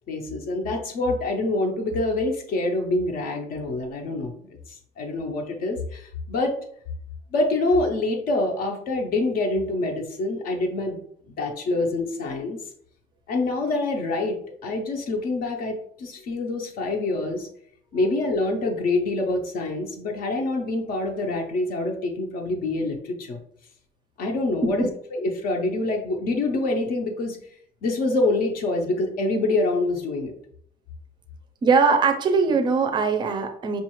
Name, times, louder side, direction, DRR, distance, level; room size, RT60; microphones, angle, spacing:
voice 1, 0.1-6.6 7.3-11.0 11.3-12.6 13.3-17.5 17.9-23.4 24.2-27.4 27.8-30.3, left 2 dB, 55° left, 2 dB, 0.6 m, -26 dB
voice 2, 31.6-33.8, right 5 dB, 25° right, 6 dB, 0.4 m, -21 dB
5.4 x 2.4 x 3.0 m, 0.65 s
cardioid pair, 180°, 19 cm